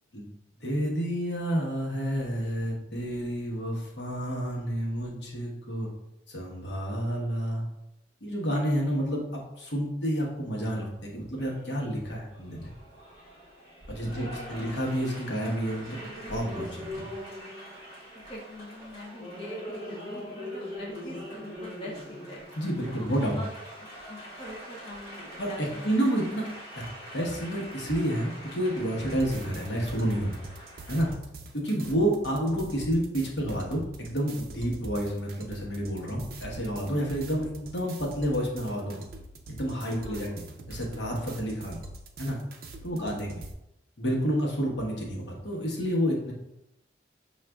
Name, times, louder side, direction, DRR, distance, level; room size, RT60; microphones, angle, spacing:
voice 1, 0.6-5.9 6.3-7.7 8.2-12.7 13.9-16.0 16.3-17.1 22.6-23.4 25.4-26.5 26.8-26.9 27.1-30.4 30.9-31.1 31.5-39.0 39.5-41.8 42.2-42.4 42.8-43.4 44.0-46.3, equal, 75° left, -2 dB, 1.0 m, -30 dB
Applause, 11.4-31.1, equal, 55° left, 1.2 m, -43 dB
voice 2, 14.0-14.7 18.1-22.4 23.0-23.5 23.8-25.9 31.8-31.9 39.9-40.4 42.9-43.3, left 1 dB, 30° left, -3 dB, 0.5 m, -44 dB
sound 1, 29.1-43.5, right 2 dB, 55° right, 0.4 m, -44 dB
6.0 x 2.4 x 2.2 m, 0.87 s
head